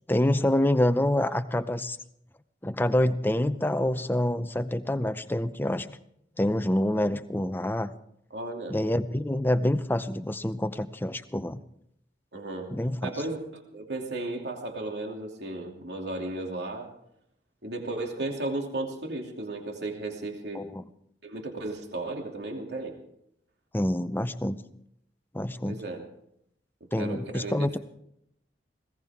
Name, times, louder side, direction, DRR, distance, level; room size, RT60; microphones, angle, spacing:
voice 1, 0.1-2.0 2.6-5.9 6.4-7.9 8.7-11.6 12.7-13.1 20.5-20.8 23.7-24.6 25.3-25.8 26.9-27.8, left 1 dB, 10° left, 11 dB, 0.6 m, -26 dB
voice 2, 8.3-8.8 12.3-12.7 13.0-13.4 13.7-16.9 17.6-20.6 21.2-22.9 25.7-26.1 27.0-27.7, right 2 dB, 70° right, 2 dB, 2.8 m, -34 dB
21.0 x 18.0 x 3.6 m, 0.74 s
head